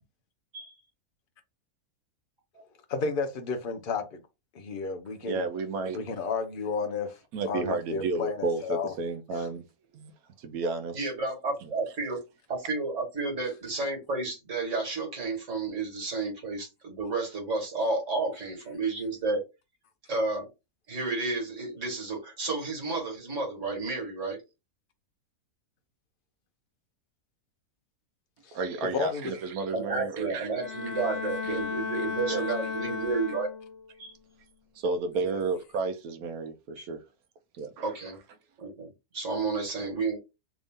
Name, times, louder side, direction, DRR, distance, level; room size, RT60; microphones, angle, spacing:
voice 1, 2.9-4.2 4.5-5.5 5.9-7.2 7.5-9.0 9.3-9.5 28.4-29.4 35.2-35.4, left 4 dB, 45° left, 0.8 m, -32 dB
voice 2, 5.3-6.0 7.3-9.6 9.9-10.1 10.4-11.0 28.5-30.5 32.3-32.4 34.8-37.0 37.6-37.7, right 3 dB, 75° right, 1.2 m, -31 dB
voice 3, 10.9-12.2 12.5-19.4 20.1-20.5 20.9-24.4 29.7-33.5 34.0-34.1 36.8-36.9 37.8-38.2 38.6-40.2, right 3 dB, 55° right, 2.0 m, -31 dB
Bowed string instrument, 30.5-33.9, left 5 dB, 65° left, 0.4 m, -34 dB
3.5 x 2.7 x 3.5 m
omnidirectional pair, 1.6 m